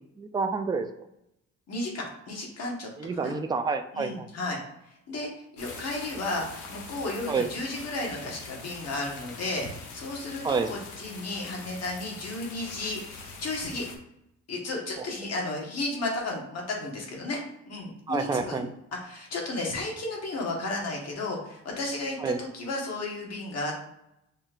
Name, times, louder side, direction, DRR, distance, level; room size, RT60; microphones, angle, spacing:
voice 1, 0.2-0.9 3.0-4.3 7.3-7.5 10.4-10.7 15.0-15.1 18.1-18.7 22.2-22.4, right 4 dB, 15° right, 7 dB, 0.3 m, -28 dB
voice 2, 1.7-2.9 3.2-3.3 3.9-4.6 5.1-13.8 14.5-17.4 17.7-18.7 19.0-23.7, left 2 dB, 55° left, -1 dB, 1.4 m, -33 dB
sound 1, 5.6-14.0, left 3 dB, 85° left, 0.9 m, -43 dB
5.4 x 2.7 x 2.5 m, 0.82 s
cardioid pair, 90°, 30 cm